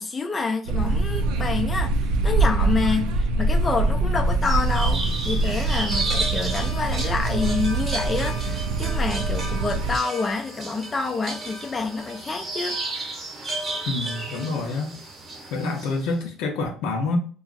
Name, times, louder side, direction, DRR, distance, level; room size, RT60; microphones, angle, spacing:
voice 1, 0.0-1.9 2.2-12.8, left 4 dB, 20° left, 4 dB, 0.3 m, -27 dB
sound 1, 0.7-10.0, right 2 dB, 90° right, 0.5 m, -24 dB
sound 2, 4.4-16.1, right 2 dB, 25° right, 0.9 m, -33 dB
voice 2, 13.9-15.0 15.5-17.2, left 3 dB, 75° left, 3 dB, 0.7 m, -27 dB
2.9 x 2.4 x 2.4 m, 0.41 s
cardioid pair, 140°, 0 cm